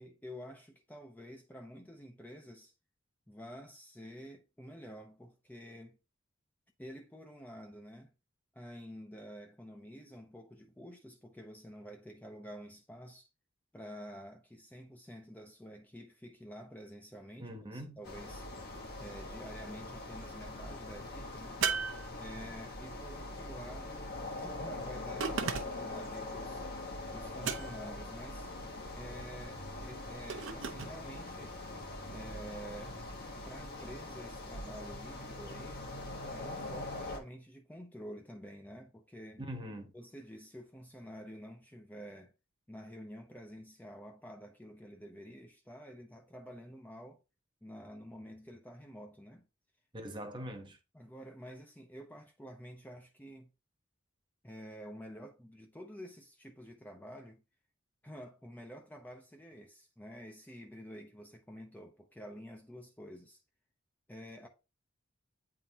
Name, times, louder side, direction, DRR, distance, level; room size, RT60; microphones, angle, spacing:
voice 1, 0.0-2.7 3.3-6.0 6.8-8.1 8.5-13.3 13.7-18.5 19.0-21.6 22.2-26.7 27.1-28.5 28.9-31.6 32.1-33.0 33.4-35.8 36.3-39.4 39.9-42.3 42.7-47.2 47.6-49.5 50.9-53.5 54.4-57.4 58.0-63.4 64.1-64.5, equal, 10° left, 0.6 m, -49 dB
voice 2, 17.4-18.0 39.4-39.9 49.9-50.8, equal, 25° right, 1.1 m, -42 dB
sound 1, 18.0-37.2, left 2 dB, 50° left, 1.4 m, -43 dB
sound 2, 21.6-22.7 25.2-26.0 27.4-28.0 30.3-31.0, right 6 dB, 65° right, 0.8 m, -36 dB
9.0 x 3.7 x 2.8 m
head